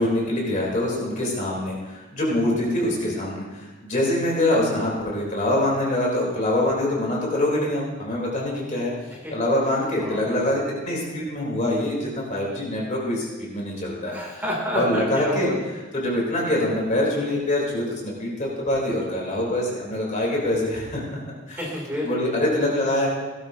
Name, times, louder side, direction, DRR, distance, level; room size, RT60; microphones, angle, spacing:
voice 1, 0.0-8.9 9.3-14.1 14.7-15.5 15.9-21.2 21.5-21.6 22.0-23.1, left 1 dB, 40° left, -3 dB, 3.4 m, -24 dB
voice 2, 10.0-10.6 14.0-15.6 21.5-22.1, equal, 10° right, -4 dB, 2.8 m, -29 dB
17.5 x 12.5 x 2.8 m, 1.2 s
head